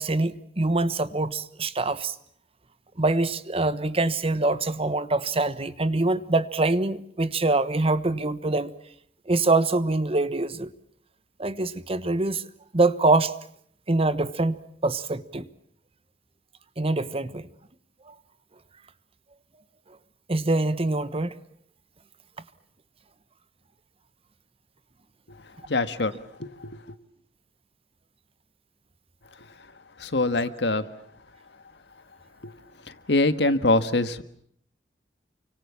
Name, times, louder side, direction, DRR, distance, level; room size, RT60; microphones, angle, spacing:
voice 1, 0.0-2.1 3.0-8.7 9.3-10.7 11.4-12.5 12.7-13.4 13.9-15.5 16.8-17.5 18.1-18.2 20.3-21.4, right 2 dB, 35° right, 1.2 m, -24 dB
voice 2, 25.7-26.1 26.4-26.8 30.0-30.9 32.4-32.5 32.9-34.2, left 2 dB, 70° left, 1.7 m, -24 dB
29.0 x 25.0 x 7.2 m
head